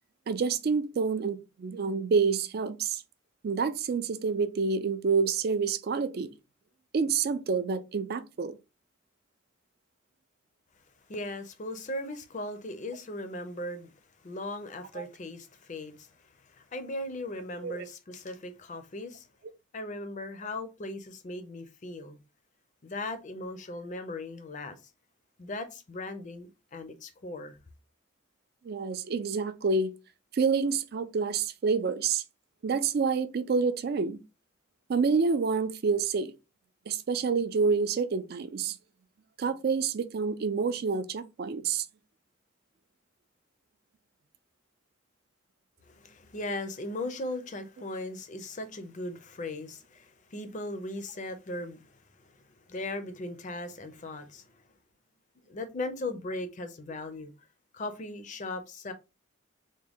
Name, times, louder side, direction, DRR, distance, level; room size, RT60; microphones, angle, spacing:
voice 1, 0.3-3.0 3.4-6.3 6.9-8.5 15.0-15.1 17.6-17.9 28.6-29.9 30.3-32.2 32.6-34.2 34.9-36.3 36.9-38.8 39.4-41.9, right 5 dB, 50° right, 0.3 m, -28 dB
voice 2, 11.1-13.9 14.2-19.3 19.7-22.2 22.8-24.8 25.4-27.6 45.8-54.4 55.5-57.3 57.7-58.9, left 2 dB, 35° left, 0.5 m, -38 dB
3.6 x 2.2 x 3.4 m
head